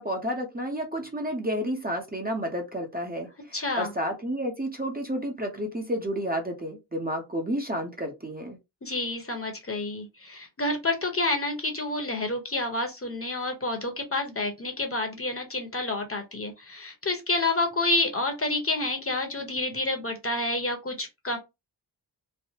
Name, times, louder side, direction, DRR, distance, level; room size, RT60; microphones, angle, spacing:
voice 1, 0.0-8.6, equal, 20° right, 0.9 m, -31 dB
voice 2, 3.5-3.9 8.8-21.4, left 2 dB, 30° left, 1.1 m, -29 dB
3.3 x 2.1 x 2.8 m
cardioid pair, 60°, 43 cm